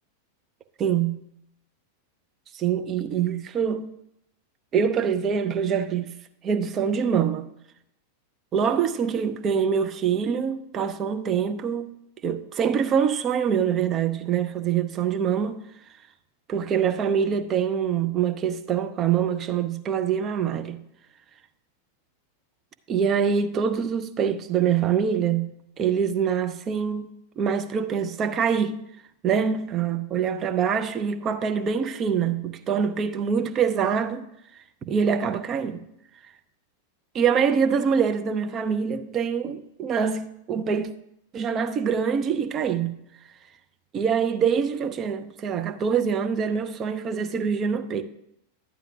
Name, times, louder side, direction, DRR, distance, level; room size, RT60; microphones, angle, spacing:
voice 1, 0.8-1.2 2.5-3.9 4.7-6.1 6.4-7.5 8.5-11.9 12.2-15.6 16.5-20.8 22.9-25.5 25.8-28.8 29.2-34.2 34.8-35.8 37.1-40.9 41.3-43.0 43.9-48.0, right 7 dB, 30° right, 0.6 m, -24 dB
12.5 x 9.1 x 2.4 m
figure-of-eight pair, 90°, 0 cm